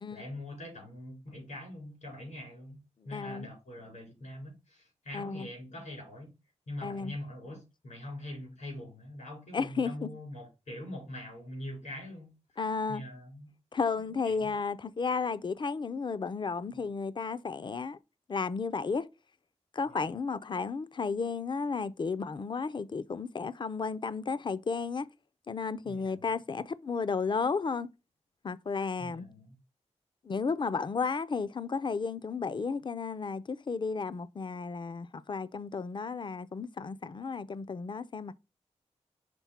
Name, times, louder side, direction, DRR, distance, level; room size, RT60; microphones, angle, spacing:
voice 1, 0.1-2.8 3.0-6.3 6.7-12.3 12.9-13.5 14.0-14.5 19.8-20.1 25.8-26.3 29.0-29.5, left 1 dB, 85° left, 4.6 m, -43 dB
voice 2, 3.0-3.5 5.1-5.5 6.8-7.1 9.5-10.1 12.6-13.0 13.7-18.0 18.3-19.1 19.7-25.1 25.5-27.9 28.4-29.3 30.2-38.3, left 5 dB, 40° left, 0.4 m, -33 dB
6.0 x 3.6 x 5.7 m
wide cardioid pair, 100°, 12 cm